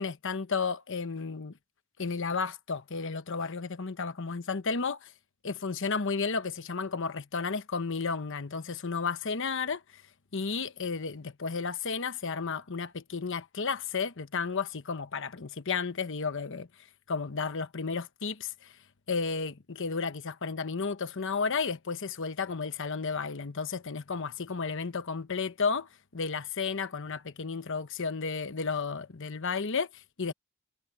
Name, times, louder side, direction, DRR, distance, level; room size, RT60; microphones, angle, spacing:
voice 1, 0.0-1.5 2.0-5.1 5.4-10.0 10.3-16.7 17.1-18.8 19.1-30.3, left 5 dB, 60° left, 1.0 m, -33 dB
head